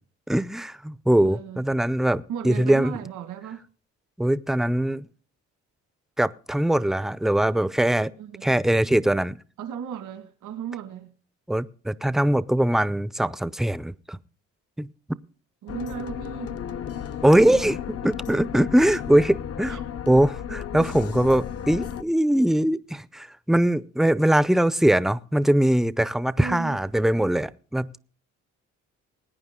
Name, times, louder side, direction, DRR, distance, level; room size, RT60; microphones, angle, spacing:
voice 1, 0.3-2.9 4.2-5.1 6.2-8.1 8.4-9.4 11.5-14.2 14.8-14.9 17.2-17.8 18.0-28.0, right 1 dB, ahead, 0.5 m, -22 dB
voice 2, 1.2-1.6 2.3-3.6 8.2-8.5 9.6-11.1 15.6-16.6 16.9-17.7 18.0-18.1 19.7-19.8 26.4-26.8, right 8 dB, 85° right, 1.8 m, -36 dB
sound 1, 15.7-22.0, left 8 dB, 55° left, 0.7 m, -34 dB
20.5 x 9.5 x 3.7 m
cardioid pair, 90°, 30 cm